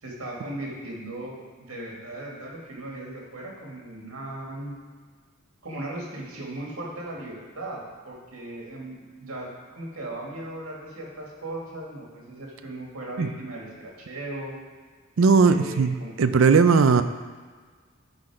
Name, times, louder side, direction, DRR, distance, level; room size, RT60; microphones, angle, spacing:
voice 1, 0.0-4.8 5.6-14.6 15.2-16.7, right 1 dB, 90° right, -2 dB, 2.0 m, -38 dB
voice 2, 15.2-17.0, right 5 dB, 65° right, 10 dB, 0.4 m, -18 dB
12.0 x 4.0 x 4.9 m, 1.5 s
head